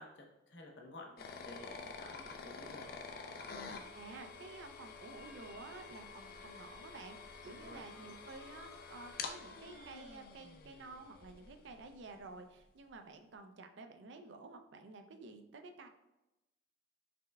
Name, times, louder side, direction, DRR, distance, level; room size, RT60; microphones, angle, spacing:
voice 1, 0.0-3.0 7.5-8.1, left 1 dB, 65° left, 0 dB, 0.8 m, -53 dB
sound 1, 1.2-12.0, left 4 dB, 50° left, 0.4 m, -49 dB
voice 2, 3.7-15.9, right 3 dB, 70° right, 6 dB, 0.5 m, -52 dB
sound 2, 5.1-10.2, left 1 dB, 15° right, 0.8 m, -62 dB
5.0 x 3.3 x 2.3 m, 0.97 s
head